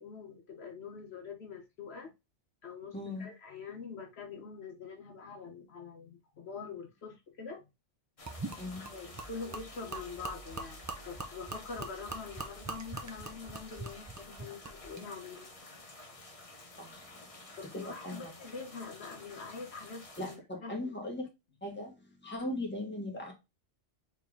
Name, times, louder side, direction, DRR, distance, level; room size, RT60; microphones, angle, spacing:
voice 1, 0.0-2.1 2.6-2.9 3.2-7.6 8.8-15.5 17.1-17.2 17.6-20.9, left 5 dB, 70° left, 1.1 m, -45 dB
voice 2, 2.9-3.3 8.6-8.9 16.8-17.1 17.7-18.3 20.2-21.3 21.6-23.3, left 1 dB, 10° left, 1.6 m, -39 dB
sound 1, 8.2-20.4, left 2 dB, 35° left, 0.9 m, -51 dB
Gurgling / Liquid, 8.3-15.1, right 3 dB, 20° right, 0.5 m, -43 dB
4.3 x 3.3 x 3.6 m
omnidirectional pair, 1.2 m